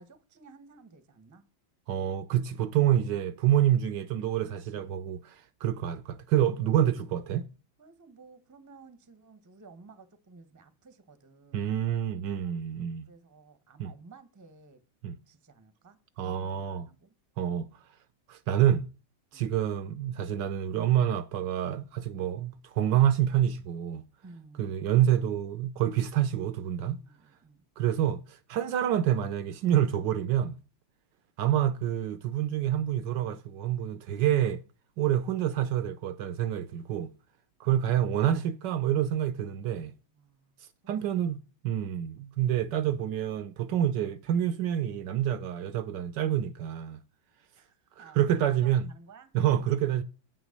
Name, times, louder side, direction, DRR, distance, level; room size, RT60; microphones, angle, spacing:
voice 1, 0.0-1.4 4.4-5.0 6.9-7.0 7.8-11.7 12.1-12.7 13.1-14.8 15.3-17.2 19.3-19.5 24.2-24.8 27.0-27.6 37.6-37.9 40.1-41.1 47.5-49.3, right 4 dB, 15° right, 0.6 m, -55 dB
voice 2, 1.9-7.5 11.5-13.1 13.8-13.9 15.0-15.2 16.2-16.9 17.4-17.7 18.3-18.9 19.3-24.0 24.6-27.0 27.8-30.6 31.4-34.6 35.0-37.1 37.6-39.9 40.9-47.0 48.0-48.9 49.3-50.0, right 11 dB, 70° right, 1.2 m, -27 dB
8.9 x 6.1 x 6.5 m
omnidirectional pair, 2.1 m